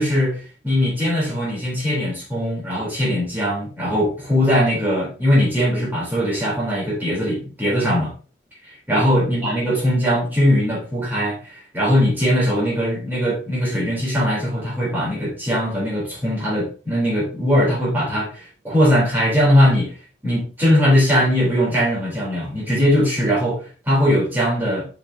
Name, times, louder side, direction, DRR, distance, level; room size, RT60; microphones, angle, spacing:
voice 1, 0.0-8.1 8.9-11.4 11.7-19.9 20.2-24.9, equal, 10° right, -6 dB, 4.0 m, -20 dB
7.3 x 5.4 x 2.9 m, 0.36 s
head